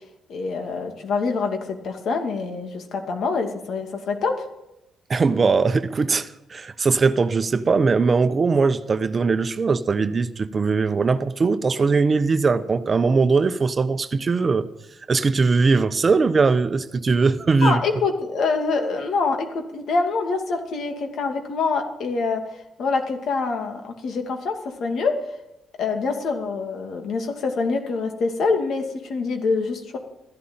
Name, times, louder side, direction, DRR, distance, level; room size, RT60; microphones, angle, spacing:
voice 1, 0.3-4.5 17.6-22.4 22.8-25.1 25.8-30.0, left 4 dB, 65° left, 2.5 m, -25 dB
voice 2, 5.1-14.7 15.1-17.8, right 4 dB, 35° right, 0.9 m, -20 dB
14.0 x 11.5 x 8.8 m
cardioid pair, 90°, 0 cm